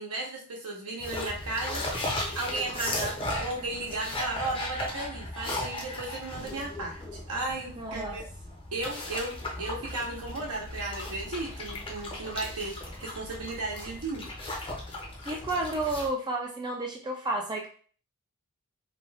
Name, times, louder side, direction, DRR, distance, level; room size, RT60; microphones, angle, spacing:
voice 1, 0.0-1.9 2.3-8.3 8.7-14.3, right 2 dB, 80° right, -1 dB, 0.8 m, -35 dB
sound 1, 1.0-16.1, left 1 dB, 25° left, 0.6 m, -36 dB
voice 2, 7.8-8.2 15.3-17.7, right 2 dB, 20° right, 0 dB, 0.4 m, -31 dB
2.7 x 2.2 x 3.2 m, 0.42 s
head